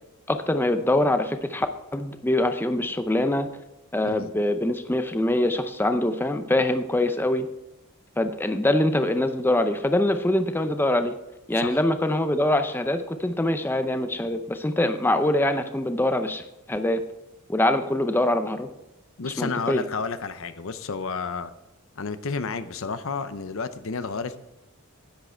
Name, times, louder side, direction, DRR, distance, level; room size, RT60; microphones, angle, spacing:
voice 1, 0.3-1.7 1.9-3.5 3.9-7.5 8.2-11.1 11.5-17.0 17.5-18.7 19.2-19.8, left 1 dB, 10° left, 8 dB, 0.6 m, -24 dB
voice 2, 19.2-21.5 22.0-24.4, left 4 dB, 65° left, 12 dB, 0.7 m, -31 dB
10.0 x 8.7 x 4.5 m, 0.98 s
head